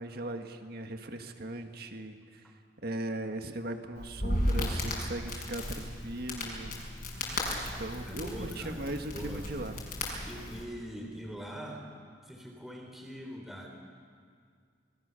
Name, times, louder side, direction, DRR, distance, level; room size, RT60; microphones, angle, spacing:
voice 1, 0.0-2.2 2.8-6.7 7.8-9.7, right 1 dB, 55° right, 6 dB, 1.7 m, -38 dB
Crackle, 4.0-10.6, left 1 dB, 55° left, 6.1 m, -35 dB
voice 2, 7.9-8.8 9.1-9.5 10.2-11.9 12.2-13.7, equal, ahead, 0 dB, 3.5 m, -42 dB
27.0 x 21.0 x 6.9 m, 2.1 s
head